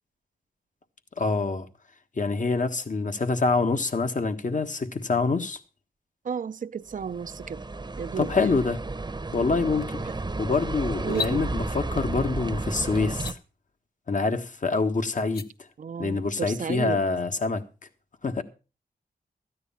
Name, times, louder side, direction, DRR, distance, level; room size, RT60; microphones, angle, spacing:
voice 1, 1.2-1.7 2.2-5.6 8.2-8.8 9.3-10.0 10.4-13.4 14.1-15.4 16.0-17.6 18.2-18.4, left 4 dB, 50° left, 1.5 m, -26 dB
voice 2, 6.2-7.6 8.0-8.6 10.2-10.4 11.0-11.4 15.8-17.0, right 6 dB, 50° right, 0.6 m, -33 dB
sound 1, 6.9-13.3, right 3 dB, 25° right, 0.9 m, -33 dB
sound 2, 11.0-11.4 13.1-13.4 15.2-15.5, left 5 dB, 70° left, 0.9 m, -33 dB
13.5 x 9.6 x 5.6 m
cardioid pair, 65°, 17 cm